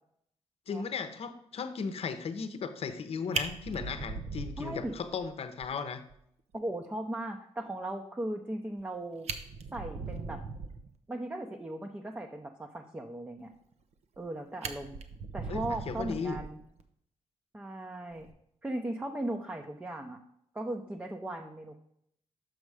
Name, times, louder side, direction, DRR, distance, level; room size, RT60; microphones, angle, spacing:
voice 1, 0.7-6.0 15.5-16.4, left 5 dB, 60° left, 9 dB, 0.8 m, -36 dB
Fire, 2.9-3.0 3.3-5.3 5.6-5.7 6.1-6.2 6.5-6.6 8.8-8.9 9.2-10.9 13.7-14.3 14.6-16.8 18.1-18.3, right 4 dB, 70° right, 0.7 m, -39 dB
voice 2, 4.6-5.0 6.5-9.3 9.7-10.4 11.1-13.5 14.2-15.0 15.3-16.6 17.5-18.3 18.6-20.2 20.5-21.8, right 1 dB, 15° right, 2 dB, 0.7 m, -37 dB
6.4 x 5.4 x 4.8 m, 0.72 s
cardioid pair, 90°, 12 cm